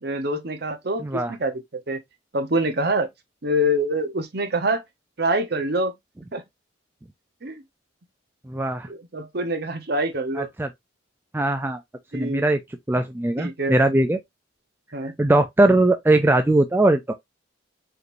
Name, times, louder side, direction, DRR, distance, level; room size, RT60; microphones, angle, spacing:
voice 1, 0.0-2.0 2.3-3.1 3.4-4.8 5.2-5.9 6.3-6.4 7.4-7.6 8.9-10.5 12.1-12.4 13.0-13.1 13.4-13.8 14.9-15.1, right 1 dB, 50° right, 0.9 m, -25 dB
voice 2, 1.0-1.3 8.5-8.9 10.4-10.7 11.3-11.8 12.1-12.6 12.9-14.2 15.0-17.1, right 2 dB, 10° right, 0.3 m, -20 dB
5.0 x 3.1 x 2.5 m
head